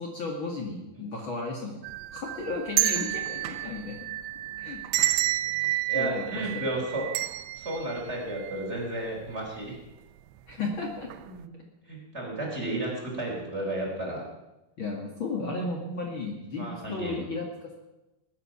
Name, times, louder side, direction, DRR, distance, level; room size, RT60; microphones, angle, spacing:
voice 1, 0.0-1.8 2.1-4.0 4.6-4.8 5.9-6.3 6.5-6.6 10.5-11.1 14.8-17.7, left 3 dB, 85° left, 0 dB, 1.1 m, -34 dB
sound 1, 1.8-9.0 9.4-9.5 10.4-10.7 11.0-11.2, right 15 dB, 80° right, 2.7 m, -30 dB
voice 2, 5.9-7.1 7.6-9.7 11.2-11.5 11.9-14.2 15.6-15.7 16.5-17.2, right 1 dB, 15° right, -2 dB, 3.4 m, -33 dB
20.5 x 11.0 x 5.8 m, 0.99 s
omnidirectional pair, 5.5 m